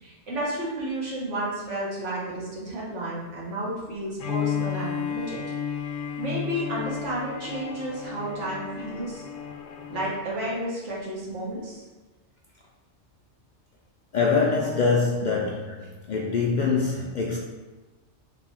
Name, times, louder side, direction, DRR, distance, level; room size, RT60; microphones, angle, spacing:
voice 1, 0.0-5.4 6.2-9.2 9.9-11.8, right 1 dB, 85° right, -6 dB, 1.5 m, -32 dB
Bowed string instrument, 4.2-10.2, left 8 dB, 75° left, 0.8 m, -33 dB
voice 2, 14.1-15.8 16.1-17.4, left 4 dB, 60° left, -2 dB, 0.5 m, -24 dB
3.3 x 3.0 x 4.2 m, 1.2 s
omnidirectional pair, 1.2 m